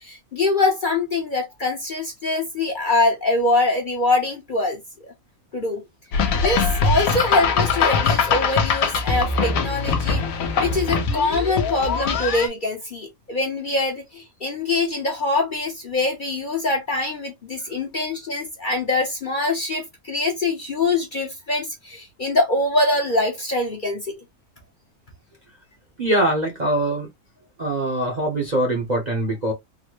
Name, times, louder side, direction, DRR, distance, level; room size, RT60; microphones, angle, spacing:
voice 1, 0.0-5.1 5.5-5.8 6.3-10.2 10.6-24.1, left 2 dB, 40° left, 0.8 m, -24 dB
sound 1, 6.1-12.5, left 5 dB, 75° left, 1.2 m, -22 dB
voice 2, 26.0-27.1 27.6-29.5, right 1 dB, 40° right, 0.7 m, -22 dB
3.9 x 2.1 x 2.9 m
omnidirectional pair, 1.5 m